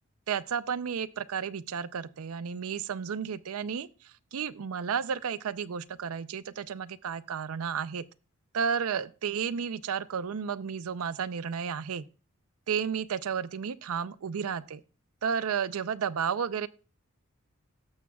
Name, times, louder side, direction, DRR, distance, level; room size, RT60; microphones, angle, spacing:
voice 1, 0.3-3.9 4.3-8.0 8.5-12.0 12.7-14.8 15.2-16.7, right 7 dB, 75° right, 0.5 m, -32 dB
18.0 x 7.2 x 2.3 m
head